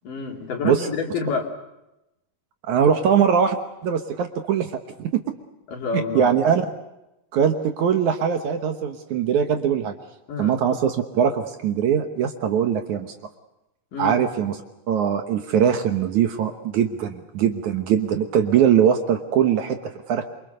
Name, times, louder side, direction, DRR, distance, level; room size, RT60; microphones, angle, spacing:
voice 1, 0.0-1.5 5.7-6.3 10.3-10.6 13.9-14.2, left 5 dB, 65° left, 2 dB, 4.3 m, -28 dB
voice 2, 2.7-4.7 5.0-5.2 5.9-6.7 7.3-9.9 10.4-13.1 14.0-14.6 14.9-20.2, right 8 dB, 65° right, 6 dB, 2.3 m, -21 dB
27.0 x 24.0 x 6.8 m, 0.92 s
omnidirectional pair, 4.2 m